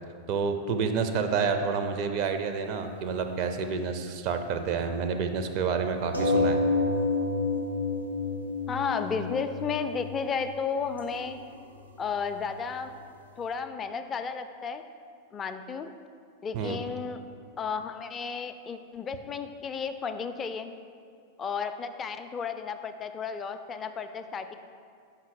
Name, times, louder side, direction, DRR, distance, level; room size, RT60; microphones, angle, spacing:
voice 1, 0.3-6.6 16.5-16.8, right 5 dB, 45° right, 6 dB, 0.5 m, -29 dB
sound 1, 2.3-2.4 2.7-2.8 6.1-11.2 11.5-11.6 11.8-11.9 12.3-12.4 12.7-12.8, left 3 dB, 85° right, 0.8 m, -29 dB
voice 2, 8.7-11.4 12.0-12.9 13.4-14.8 15.3-15.9 16.4-17.2 17.6-20.7 21.4-24.6, left 5 dB, 25° left, 9 dB, 0.4 m, -33 dB
5.9 x 5.5 x 4.8 m, 2.3 s
figure-of-eight pair, 90°, 0 cm